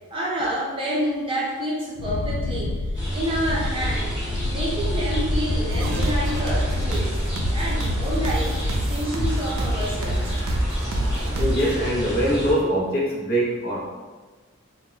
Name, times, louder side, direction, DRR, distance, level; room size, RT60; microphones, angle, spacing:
voice 1, 0.1-2.7 3.1-4.2 4.5-7.2 7.5-10.3, equal, 25° right, -6 dB, 0.5 m, -28 dB
Wind, 1.9-9.1, left 2 dB, 90° left, 0.3 m, -29 dB
sound 1, 2.9-12.5, equal, 15° left, 0.8 m, -29 dB
sound 2, 5.7-11.7, right 1 dB, 70° right, 0.3 m, -27 dB
voice 2, 11.4-14.0, equal, 45° left, -4 dB, 0.6 m, -23 dB
2.1 x 2.1 x 3.7 m, 1.3 s
head